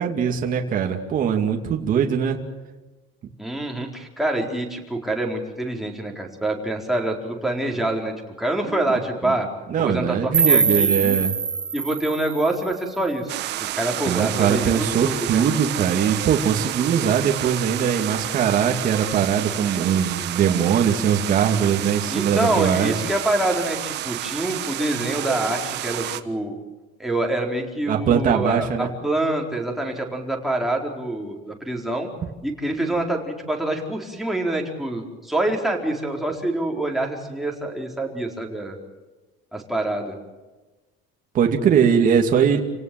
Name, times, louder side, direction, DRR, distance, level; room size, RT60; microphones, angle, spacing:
voice 1, 0.0-2.4 8.6-9.4 9.7-11.3 14.0-22.9 27.9-28.9 41.3-42.6, right 7 dB, 40° right, 3 dB, 2.6 m, -21 dB
voice 2, 3.4-9.5 9.8-11.2 11.7-13.3 13.7-15.4 22.1-26.6 27.0-32.1 32.4-38.8 39.5-40.2, right 1 dB, ahead, 0 dB, 4.3 m, -26 dB
sound 1, 10.3-13.3, right 5 dB, 20° right, 2.4 m, -23 dB
sound 2, 13.3-26.2, right 14 dB, 55° right, 1.4 m, -30 dB
30.0 x 18.0 x 7.8 m, 1.2 s
cardioid pair, 155°, 21 cm